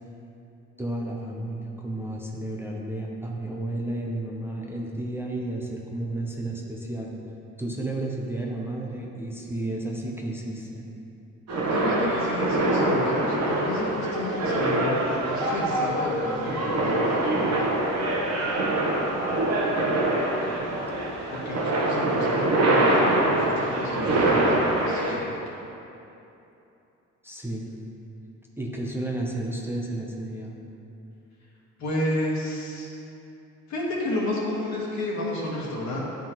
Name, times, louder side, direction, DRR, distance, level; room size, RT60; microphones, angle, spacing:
voice 1, 0.8-7.1 7.6-10.9 27.2-27.7 28.6-30.5, right 1 dB, 10° right, -3 dB, 0.6 m, -32 dB
sound 1, 11.5-25.2, right 2 dB, 60° right, 1.0 m, -24 dB
voice 2, 11.7-17.7 21.3-25.6 31.8-32.9 33.7-36.0, left 1 dB, 65° left, -4 dB, 1.5 m, -31 dB
9.5 x 3.7 x 2.9 m, 2.8 s
cardioid pair, 90°, 30 cm